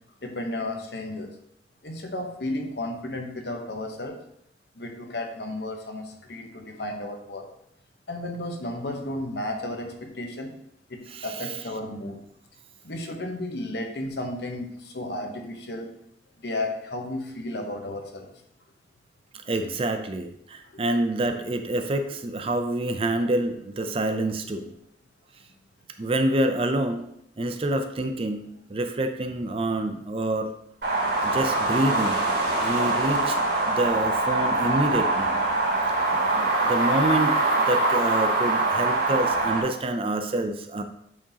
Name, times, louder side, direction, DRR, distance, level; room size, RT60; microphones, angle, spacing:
voice 1, 0.2-1.3 1.8-4.2 4.7-7.5 8.1-10.6 10.9-12.2 12.8-15.9 16.4-18.3 20.6-20.8, left 1 dB, 65° left, 4 dB, 0.9 m, -33 dB
voice 2, 11.1-11.5 19.5-24.7 26.0-27.1 27.4-30.5 31.2-32.2 32.6-33.4 33.7-35.4 36.1-40.8, right 1 dB, 30° right, 8 dB, 0.4 m, -27 dB
sound 1, 30.8-39.6, right 2 dB, 70° right, 2.5 m, -23 dB
8.3 x 4.9 x 2.9 m, 0.75 s
head